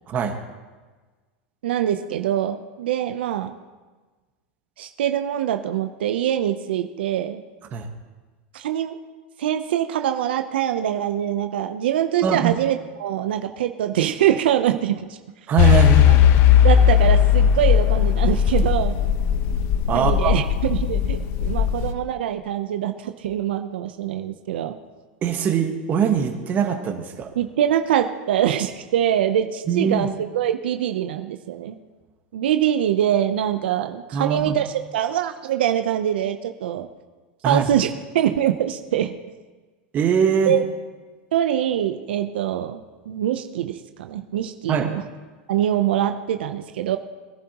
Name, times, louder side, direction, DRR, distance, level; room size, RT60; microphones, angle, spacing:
voice 1, 0.1-0.4 7.7-7.9 12.2-12.5 15.5-16.2 19.9-20.4 25.2-27.3 29.7-30.1 34.1-34.5 37.4-37.6 39.9-40.6 44.7-44.9, right 7 dB, 35° right, 4 dB, 1.5 m, -22 dB
voice 2, 1.6-3.5 4.8-7.4 8.5-9.0 9.4-15.2 16.6-19.0 19.9-24.8 27.4-31.8 32.3-36.9 37.5-37.9 38.1-39.1 40.5-40.6 41.3-45.0 45.5-47.0, right 11 dB, 90° right, 7 dB, 0.7 m, -24 dB
sound 1, 15.6-21.9, left 9 dB, 50° left, 0.8 m, -17 dB
21.0 x 11.0 x 3.0 m, 1.3 s
supercardioid pair, 130°, 5 cm